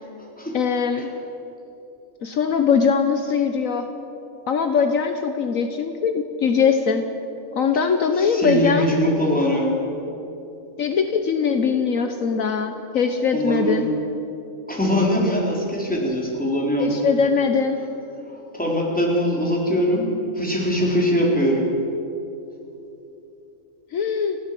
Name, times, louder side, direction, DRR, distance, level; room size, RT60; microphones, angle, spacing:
voice 1, 0.5-1.1 2.2-3.9 4.5-7.0 7.5-9.0 10.8-13.9 16.8-17.8 23.9-24.4, left 6 dB, 65° left, 7 dB, 1.4 m, -21 dB
voice 2, 8.3-9.8 13.3-13.9 14.7-16.9 18.3-20.1 20.3-21.7, equal, 5° left, -3 dB, 4.0 m, -22 dB
29.5 x 12.0 x 7.7 m, 2.9 s
omnidirectional pair, 1.5 m